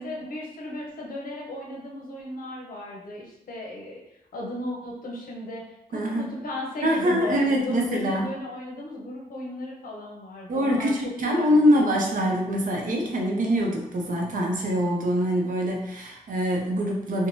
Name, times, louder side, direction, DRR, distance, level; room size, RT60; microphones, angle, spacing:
voice 1, 0.0-4.0 4.3-11.9, left 1 dB, 65° left, -2 dB, 0.7 m, -36 dB
voice 2, 5.9-6.3 6.8-8.3 10.5-17.3, equal, 60° right, 0 dB, 0.6 m, -24 dB
2.6 x 2.1 x 3.0 m, 0.86 s
wide cardioid pair, 125°, 16 cm